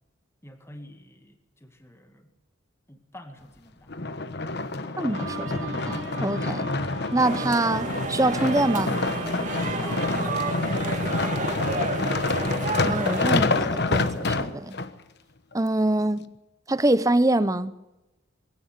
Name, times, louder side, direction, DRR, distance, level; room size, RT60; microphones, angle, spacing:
voice 1, 0.4-2.3 2.9-3.9 9.8-11.9, left 1 dB, 10° left, 2.0 m, -45 dB
sound 1, 3.9-14.9 15.5-15.6, left 3 dB, 50° left, 1.2 m, -27 dB
voice 2, 5.0-6.7 7.1-9.0 12.8-14.8 15.5-16.3 16.7-17.7, right 2 dB, 15° right, 0.7 m, -25 dB
Bowed string instrument, 5.1-11.4, right 4 dB, 60° right, 2.7 m, -40 dB
sound 2, 7.2-13.3, right 3 dB, 35° right, 2.6 m, -31 dB
22.5 x 16.5 x 9.5 m
head